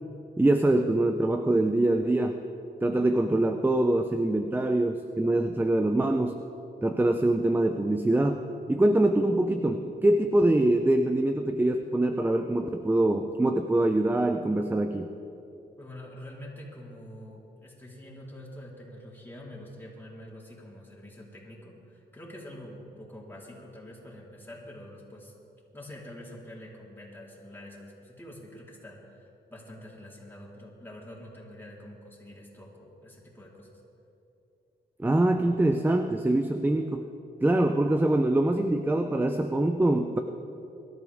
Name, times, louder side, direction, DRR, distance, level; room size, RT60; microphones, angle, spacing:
voice 1, 0.4-2.4 2.8-6.4 6.8-15.1 35.0-37.1 37.4-40.2, right 1 dB, 10° right, 7 dB, 0.6 m, -24 dB
voice 2, 15.8-25.3 25.7-33.8, left 1 dB, 10° left, -5 dB, 4.0 m, -46 dB
23.0 x 12.5 x 3.6 m, 2.9 s
cardioid pair, 85°, 18 cm